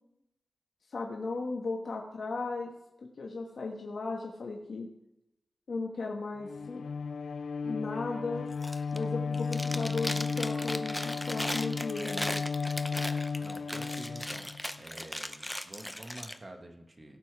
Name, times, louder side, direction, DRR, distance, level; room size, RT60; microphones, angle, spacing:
voice 1, 0.9-2.7 3.2-4.9 5.7-6.8 7.6-8.5 8.9-12.4, left 3 dB, 65° left, 0 dB, 1.5 m, -36 dB
Bowed string instrument, 6.4-14.8, left 5 dB, 85° left, 0.4 m, -34 dB
Chewing mastication, 8.5-9.0 9.3-16.4, left 1 dB, 5° left, 0.7 m, -38 dB
voice 2, 13.4-17.2, right 1 dB, 30° right, 4 dB, 1.5 m, -48 dB
17.0 x 7.0 x 4.8 m, 0.85 s
wide cardioid pair, 135°, 0 cm